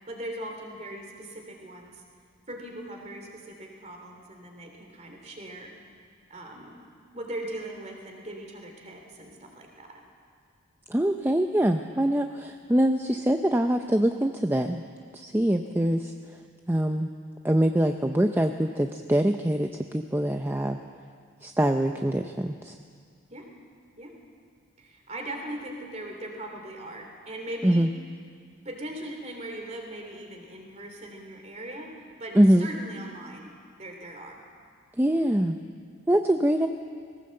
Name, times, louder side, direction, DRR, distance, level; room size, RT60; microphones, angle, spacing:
voice 1, 0.0-2.0 2.5-5.7 6.3-6.8 7.1-10.0 23.3-23.5 24.0-24.2 24.8-27.9 28.6-31.9 32.2-33.5 33.8-34.4, right 1 dB, 30° right, 2 dB, 3.1 m, -39 dB
voice 2, 10.9-14.8 15.1-16.1 16.7-17.1 17.4-20.8 21.4-22.7 27.6-27.9 32.4-32.7 35.0-35.6 36.1-36.7, right 1 dB, 10° right, 5 dB, 0.5 m, -24 dB
19.0 x 17.5 x 7.7 m, 2.1 s
head